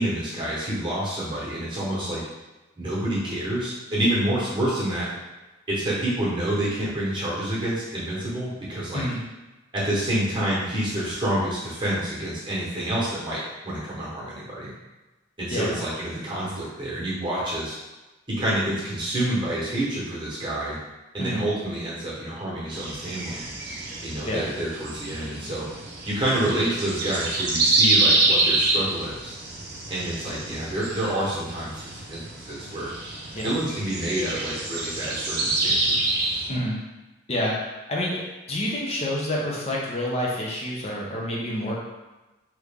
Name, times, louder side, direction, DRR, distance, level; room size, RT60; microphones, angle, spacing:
voice 1, 0.0-2.2 2.8-5.1 5.7-9.0 9.7-14.7 15.4-17.7 18.3-20.8 21.1-23.5 24.0-25.7 26.0-29.3 29.9-32.2 32.5-32.9 33.4-36.1, right 1 dB, 25° right, -7 dB, 1.1 m, -28 dB
voice 2, 15.5-15.8 21.2-21.5 24.3-24.4 33.3-33.5 36.5-36.8 37.3-38.2 38.5-41.8, left 1 dB, 30° left, -3 dB, 0.7 m, -28 dB
sound 1, 22.7-36.5, right 2 dB, 55° right, 0.6 m, -27 dB
3.0 x 2.5 x 3.6 m, 1.1 s
head